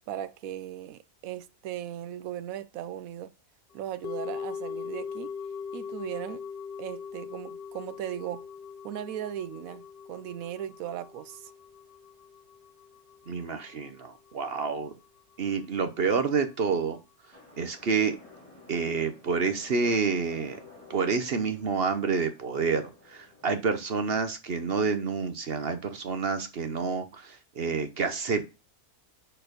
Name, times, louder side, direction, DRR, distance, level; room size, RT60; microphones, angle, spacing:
voice 1, 0.1-3.3 3.7-5.3 5.7-6.4 6.8-8.5 8.8-11.5, right 11 dB, 70° right, 1.0 m, -37 dB
sound 1, 4.0-14.3 14.6-14.7, left 6 dB, 60° left, 0.5 m, -41 dB
voice 2, 13.3-14.9 15.4-17.0 17.6-18.2 18.7-20.6 20.9-28.6, right 5 dB, 50° right, 0.9 m, -28 dB
sound 2, 17.3-23.4, left 2 dB, 20° left, 2.4 m, -52 dB
6.6 x 4.5 x 5.1 m
omnidirectional pair, 1.6 m